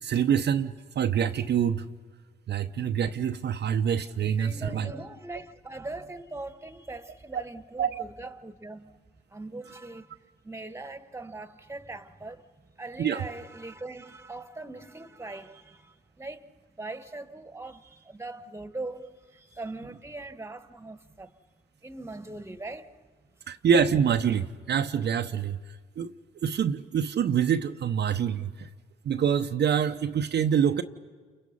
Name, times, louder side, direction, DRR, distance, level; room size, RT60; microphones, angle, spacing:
voice 1, 0.0-1.9 2.5-5.0 7.3-7.4 7.8-8.0 13.0-13.2 23.5-25.6 26.0-26.1 26.4-28.7 29.0-30.8, right 8 dB, 55° right, 0.8 m, -26 dB
voice 2, 4.2-9.0 9.3-16.5 16.8-21.4 21.8-23.1, right 2 dB, 10° right, 1.5 m, -41 dB
29.5 x 28.5 x 5.5 m
hypercardioid pair, 50°, 21 cm